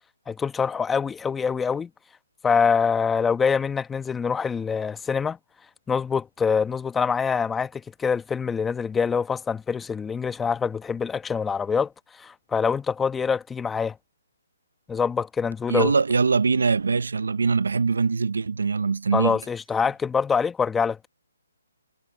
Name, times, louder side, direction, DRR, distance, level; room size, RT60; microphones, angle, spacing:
voice 1, 0.3-1.9 2.4-5.4 5.9-14.0 14.9-15.9 19.1-21.1, left 6 dB, 10° left, 1.1 m, -25 dB
voice 2, 15.7-19.3, right 4 dB, 80° right, 0.9 m, -22 dB
hypercardioid pair, 150°, 0 cm